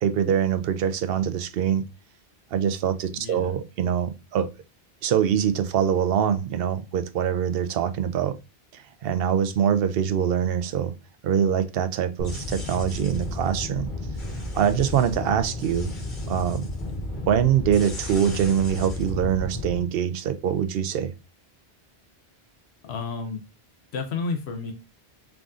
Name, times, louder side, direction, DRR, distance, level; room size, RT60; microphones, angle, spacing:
voice 1, 0.0-1.8 2.5-4.5 5.0-8.4 8.7-10.9 11.2-13.9 14.5-15.9 16.3-16.6 17.3-21.1, right 9 dB, 70° right, 0.8 m, -24 dB
voice 2, 3.2-3.5 22.8-23.4 23.9-24.7, left 4 dB, 85° left, 1.0 m, -31 dB
sound 1, 12.2-19.8, left 2 dB, 50° left, 1.5 m, -32 dB
4.8 x 3.6 x 2.4 m
omnidirectional pair, 1.1 m